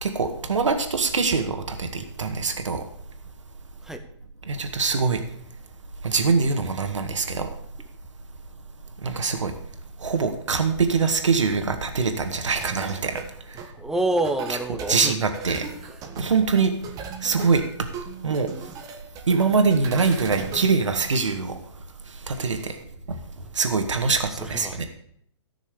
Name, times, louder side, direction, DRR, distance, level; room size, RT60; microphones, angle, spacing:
voice 1, 0.0-2.8 4.5-5.2 6.0-7.5 9.0-9.5 10.0-13.2 13.5-13.7 14.9-15.7 16.2-16.7 17.2-17.6 18.2-18.5 19.3-21.6 22.1-22.7 23.1-23.2 23.5-24.8, right 4 dB, 75° right, 6 dB, 1.9 m, -23 dB
sound 1, 12.5-21.1, right 5 dB, 20° right, 1.5 m, -39 dB
voice 2, 13.8-15.2 24.3-24.8, right 1 dB, 5° right, 6 dB, 1.0 m, -27 dB
14.5 x 6.3 x 6.9 m, 0.67 s
hypercardioid pair, 130°, 16 cm